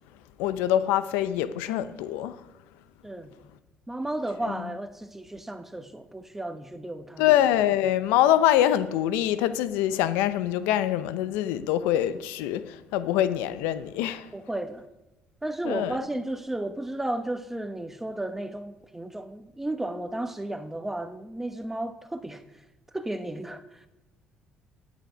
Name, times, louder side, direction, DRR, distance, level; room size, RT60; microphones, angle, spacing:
voice 1, 0.4-2.4 4.5-4.7 7.2-14.3 15.6-16.0, left 12 dB, 90° left, 0.6 m, -24 dB
voice 2, 3.9-7.3 14.3-14.8 15.4-22.4 22.9-23.8, right 1 dB, 10° right, 1.1 m, -33 dB
10.5 x 9.4 x 5.1 m
supercardioid pair, 85°, 3 cm